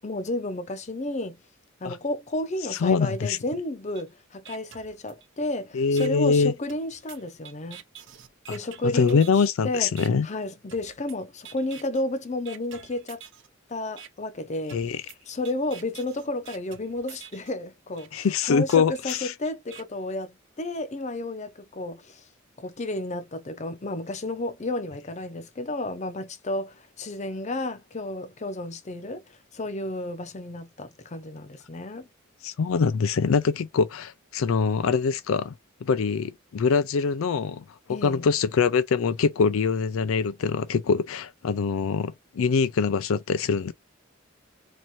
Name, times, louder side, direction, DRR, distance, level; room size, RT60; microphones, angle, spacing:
voice 1, 0.0-1.4 1.8-7.8 8.5-9.2 9.6-9.9 10.2-13.2 13.7-14.8 15.3-22.2 22.6-32.1 37.9-38.2, left 2 dB, 35° left, 0.6 m, -32 dB
voice 2, 2.7-3.4 5.7-6.5 8.5-8.6 8.8-10.3 14.7-15.0 18.1-19.3 32.4-35.5 35.8-37.6 37.9-43.7, left 5 dB, 75° left, 0.4 m, -24 dB
sound 1, 4.0-4.1 4.5-5.5 6.0-6.1 6.7-9.5 10.0-10.1 10.7-11.2 11.5-12.0 12.5-13.5 14.0-14.1 14.7-17.5 18.0-18.1 18.7-19.8, right 8 dB, 60° right, 0.7 m, -46 dB
3.0 x 2.6 x 4.2 m
head